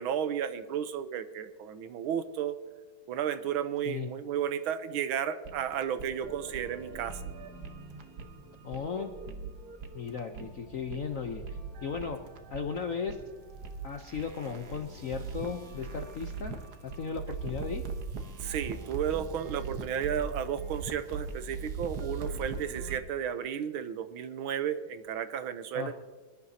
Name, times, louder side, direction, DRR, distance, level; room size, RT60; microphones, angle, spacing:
voice 1, 0.0-2.6 3.1-7.2 18.4-25.9, right 9 dB, 80° right, 11 dB, 1.6 m, -33 dB
sound 1, 5.4-23.0, right 4 dB, 55° right, 1.4 m, -40 dB
voice 2, 8.6-9.1 9.9-11.4 11.8-12.2 12.5-13.2 13.8-16.6 16.8-17.8 25.7-25.9, left 6 dB, 65° left, 5 dB, 0.8 m, -36 dB
22.5 x 11.0 x 2.8 m, 1.4 s
omnidirectional pair, 2.3 m